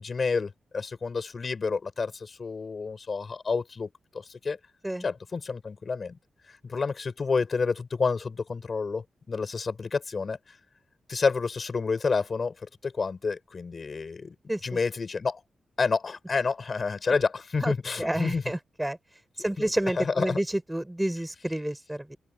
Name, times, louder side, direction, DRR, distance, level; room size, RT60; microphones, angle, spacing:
voice 1, 0.0-4.6 5.0-6.2 6.5-10.4 11.1-14.3 14.6-15.4 15.8-18.4 19.6-20.4, left 4 dB, 50° left, 7.8 m, -29 dB
voice 2, 17.6-19.0 19.4-22.2, right 1 dB, 10° right, 5.5 m, -29 dB
open air
cardioid pair, 55°, 0 cm